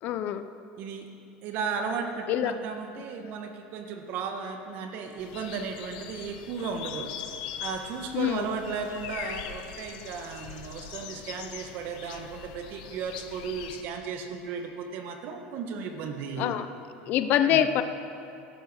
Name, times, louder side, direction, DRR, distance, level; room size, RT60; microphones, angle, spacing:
voice 1, 0.0-0.5 2.3-2.5 8.1-8.5 16.4-16.7 17.1-17.8, left 10 dB, 45° left, 10 dB, 0.6 m, -25 dB
voice 2, 0.8-1.1 1.4-7.1 7.6-16.6 17.4-17.6, right 5 dB, 50° right, 5 dB, 1.5 m, -35 dB
sound 1, 5.2-13.8, left 9 dB, 90° left, 1.1 m, -41 dB
16.0 x 11.5 x 6.3 m, 2.7 s
cardioid pair, 160°, 4 cm